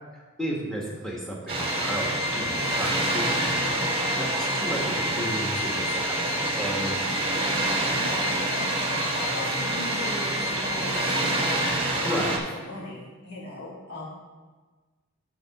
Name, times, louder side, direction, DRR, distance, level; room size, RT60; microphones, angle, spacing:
voice 1, 0.4-3.7 4.2-7.4 12.0-12.3, equal, 5° left, -3 dB, 1.3 m, -33 dB
Water, 1.5-12.4, right 2 dB, 25° right, 1.1 m, -27 dB
Organ, 1.6-12.2, left 3 dB, 30° left, 0.7 m, -34 dB
voice 2, 7.7-8.2 8.5-14.0, left 2 dB, 50° left, -8 dB, 1.9 m, -39 dB
10.0 x 3.6 x 5.8 m, 1.3 s
head